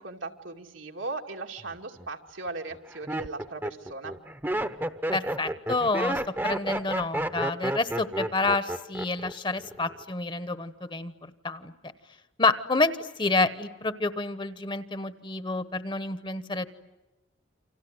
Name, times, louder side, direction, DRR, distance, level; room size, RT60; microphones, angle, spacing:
voice 1, 0.0-4.1, right 3 dB, 85° right, 2 dB, 2.5 m, -38 dB
Laughter, 1.7-2.1 2.7-9.3 9.6-10.1, right 1 dB, 10° right, 0.9 m, -31 dB
voice 2, 5.1-11.7 12.4-12.9 13.2-16.6, left 3 dB, 25° left, 13 dB, 1.0 m, -28 dB
29.0 x 25.5 x 7.9 m, 1.1 s
head